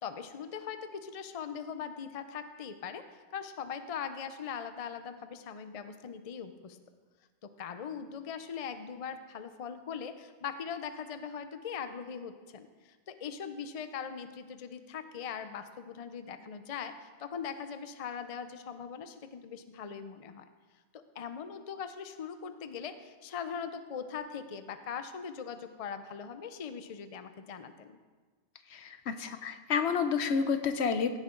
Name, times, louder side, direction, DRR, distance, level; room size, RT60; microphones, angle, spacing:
voice 1, 0.0-3.0 3.3-6.8 7.4-20.4 20.9-28.0, left 7 dB, 40° left, 10 dB, 0.6 m, -41 dB
voice 2, 28.7-31.2, left 6 dB, 70° left, 10 dB, 1.0 m, -30 dB
16.0 x 9.5 x 3.8 m, 1.4 s
omnidirectional pair, 1.2 m